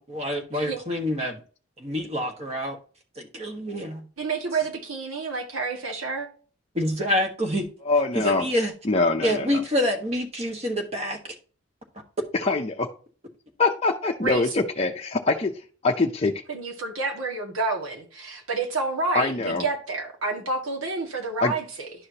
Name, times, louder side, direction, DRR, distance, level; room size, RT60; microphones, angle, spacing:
voice 1, 0.1-1.4 1.8-2.8 3.2-4.1 6.7-7.7 8.1-8.7 9.2-11.3, equal, 30° right, 1.4 m, -27 dB
voice 2, 4.2-6.3 14.2-14.4 16.5-21.9, right 3 dB, 80° right, 2.0 m, -29 dB
voice 3, 7.9-8.5 8.8-9.6 12.3-12.9 13.6-15.5 15.8-16.4 19.1-19.7 21.4-21.5, left 3 dB, 30° left, 0.6 m, -23 dB
11.5 x 4.9 x 2.8 m
head